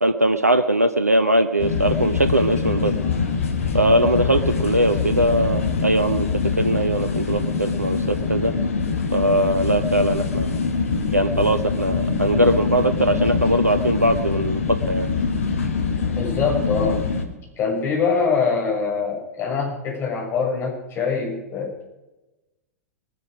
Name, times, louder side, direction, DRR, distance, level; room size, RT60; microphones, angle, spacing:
voice 1, 0.0-2.9 3.7-6.3 6.6-8.5 9.1-10.5 11.1-15.1, right 1 dB, 85° right, 10 dB, 0.8 m, -20 dB
sound 1, 1.6-17.2, left 5 dB, 65° left, 1.9 m, -24 dB
voice 2, 16.2-17.0 17.6-21.8, left 5 dB, 30° left, -2 dB, 6.4 m, -24 dB
21.5 x 11.0 x 5.0 m, 1.0 s
figure-of-eight pair, 95°, 8 cm